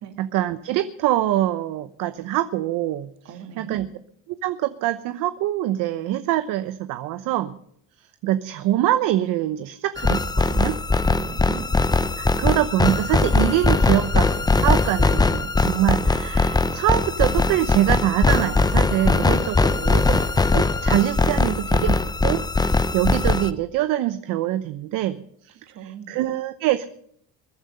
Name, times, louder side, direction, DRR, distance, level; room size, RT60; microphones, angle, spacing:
voice 1, 0.2-3.1 3.6-3.9 4.4-7.5 8.2-10.8 12.2-20.2 20.5-25.2 25.4-25.6 26.1-26.8, right 13 dB, 70° right, 11 dB, 0.9 m, -24 dB
voice 2, 3.2-3.9 11.0-11.7 19.0-20.1 25.7-26.2, right 8 dB, 55° right, 6 dB, 2.6 m, -39 dB
sound 1, 10.0-23.5, left 3 dB, 10° left, 0.8 m, -20 dB
21.5 x 10.0 x 5.4 m, 0.66 s
supercardioid pair, 105°, 33 cm